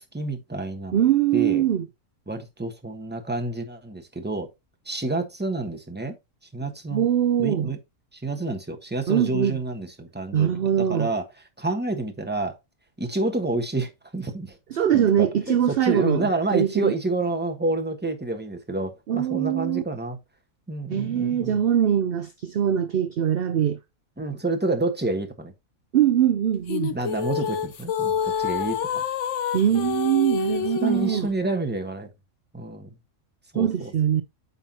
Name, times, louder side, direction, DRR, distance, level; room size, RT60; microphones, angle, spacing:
voice 1, 0.0-1.0 1.3-1.6 2.3-4.5 4.8-6.2 6.5-7.1 7.4-7.8 8.1-11.3 11.6-12.6 13.0-14.6 14.9-20.2 20.7-21.6 24.2-25.5 26.9-29.0 29.6-29.8 30.8-32.1 32.5-32.9 33.5-33.9, right 2 dB, 10° right, 1.2 m, -29 dB
voice 2, 0.9-1.9 6.9-7.7 9.1-9.6 10.3-11.1 14.7-16.9 19.1-19.8 20.9-23.8 25.9-26.9 29.5-31.3 33.6-34.2, right 10 dB, 60° right, 0.6 m, -22 dB
sound 1, 26.7-31.2, left 7 dB, 60° left, 1.1 m, -27 dB
9.3 x 5.9 x 2.8 m
omnidirectional pair, 1.5 m